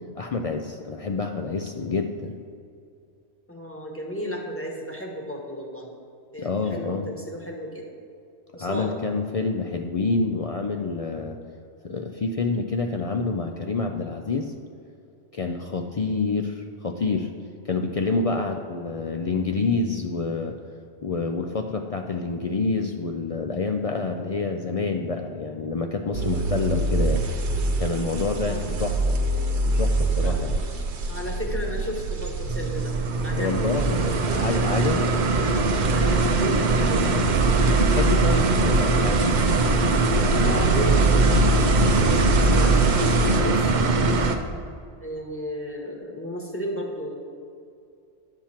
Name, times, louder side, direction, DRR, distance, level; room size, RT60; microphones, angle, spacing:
voice 1, 0.2-2.4 6.4-7.1 8.5-11.4 11.8-14.5 15.3-17.3 17.6-20.6 21.0-27.2 27.8-29.2 29.6-30.6 33.4-35.1 37.7-39.4, left 4 dB, 60° left, 4 dB, 0.3 m, -27 dB
voice 2, 3.5-5.9 6.3-7.8 8.5-9.0 28.4-28.8 30.2-30.4 31.1-32.9 33.2-34.3 34.8-35.2 35.9-37.3 40.4-41.2 41.8-44.1 45.0-47.1, equal, 10° left, -1 dB, 1.3 m, -34 dB
sound 1, 26.1-43.4, right 2 dB, 70° right, 1.1 m, -25 dB
sound 2, 32.4-44.3, right 3 dB, 50° right, 0.6 m, -22 dB
10.5 x 7.3 x 4.3 m, 2.5 s
omnidirectional pair, 1.2 m